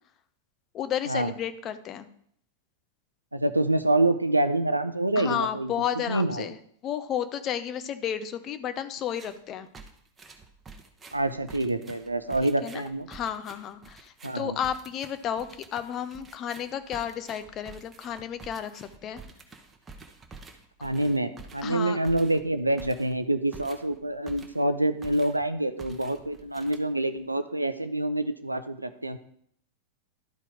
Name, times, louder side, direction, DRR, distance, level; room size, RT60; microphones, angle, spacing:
voice 1, 0.7-2.1 5.2-6.6 6.8-9.7 12.4-19.2 21.6-22.0, left 9 dB, 30° left, 11 dB, 0.7 m, -32 dB
voice 2, 3.3-5.7 6.1-6.5 11.1-13.1 14.2-14.6 20.8-29.2, right 1 dB, 85° right, 11 dB, 0.5 m, -26 dB
sound 1, 9.1-9.4 9.7-24.7 25.0-25.5 25.8-27.2, right 4 dB, 15° right, 1.0 m, -49 dB
12.0 x 4.5 x 4.8 m, 0.67 s
figure-of-eight pair, 90°, 0 cm